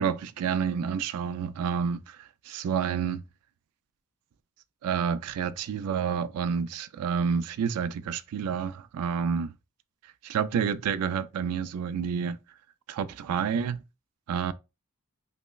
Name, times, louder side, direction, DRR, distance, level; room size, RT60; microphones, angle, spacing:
voice 1, 0.0-3.2 4.8-9.5 10.2-12.4 12.9-13.8 14.3-14.5, right 7 dB, 80° right, 0.3 m, -29 dB
5.2 x 2.1 x 2.3 m
head